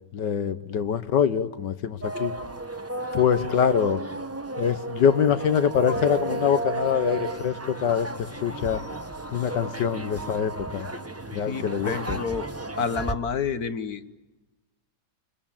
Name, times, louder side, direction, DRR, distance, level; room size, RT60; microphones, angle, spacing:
voice 1, 0.1-2.3 3.1-4.0 4.6-8.1 8.4-8.8 9.3-10.9 11.3-12.2, left 8 dB, 80° left, 12 dB, 1.8 m, -24 dB
sound 1, 2.0-13.1, right 2 dB, 15° right, 0.7 m, -33 dB
voice 2, 11.5-12.5 12.8-14.2, left 6 dB, 60° left, 11 dB, 1.6 m, -29 dB
29.0 x 22.5 x 7.3 m, 1.1 s
omnidirectional pair, 1.9 m